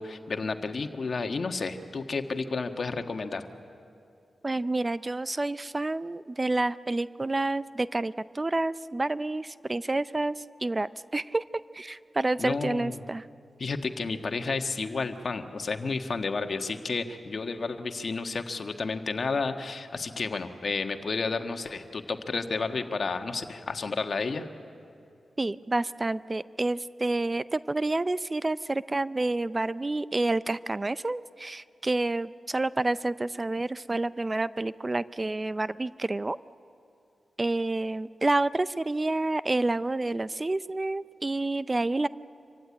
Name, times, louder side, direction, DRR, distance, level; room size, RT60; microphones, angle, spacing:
voice 1, 0.0-3.5 12.4-13.0 13.6-24.5, left 4 dB, 60° left, 6 dB, 1.5 m, -31 dB
voice 2, 4.4-11.4 11.7-13.3 25.4-36.4 37.4-42.1, right 2 dB, 30° right, 16 dB, 0.5 m, -29 dB
26.0 x 15.5 x 9.8 m, 2.6 s
cardioid pair, 50°, 0 cm